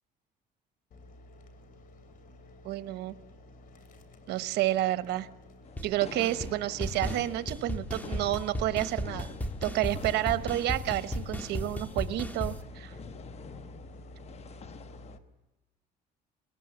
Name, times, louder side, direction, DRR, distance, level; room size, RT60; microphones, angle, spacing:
sound 1, 0.9-15.2, equal, 55° left, 2.9 m, -50 dB
voice 1, 2.6-3.2 4.3-5.3 5.8-9.3 9.6-12.9, right 15 dB, 80° right, 13 dB, 1.0 m, -30 dB
sound 2, 5.6-15.2, left 7 dB, 40° left, 0.9 m, -49 dB
sound 3, 5.8-5.9 6.2-6.5 6.8-12.6, left 1 dB, 10° left, 1.6 m, -35 dB
21.5 x 19.0 x 7.8 m, 1.0 s
cardioid pair, 110°, 17 cm